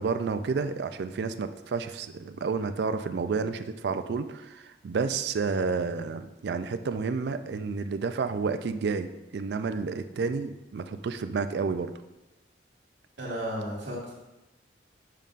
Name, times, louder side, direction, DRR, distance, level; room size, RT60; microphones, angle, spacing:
voice 1, 0.0-11.9, right 4 dB, 65° right, 10 dB, 0.3 m, -30 dB
voice 2, 13.2-14.1, equal, 85° right, -4 dB, 1.8 m, -33 dB
7.4 x 5.3 x 2.5 m, 1.0 s
head